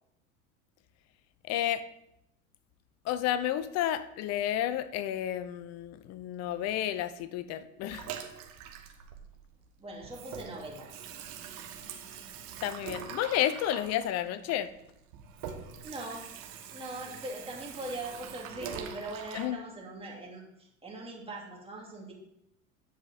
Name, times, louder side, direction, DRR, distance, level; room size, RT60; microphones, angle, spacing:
voice 1, 1.5-1.8 3.0-8.1 12.6-14.7 19.3-19.6, left 11 dB, 40° left, 15 dB, 0.6 m, -31 dB
Water tap faucet / Sink (filling or washing), 7.9-9.7 10.0-19.5, right 7 dB, 50° right, 1.5 m, -44 dB
voice 2, 9.8-10.9 15.8-16.3 16.7-22.1, right 2 dB, 15° right, -3 dB, 2.7 m, -41 dB
9.9 x 5.1 x 4.1 m, 0.83 s
figure-of-eight pair, 75°, 42 cm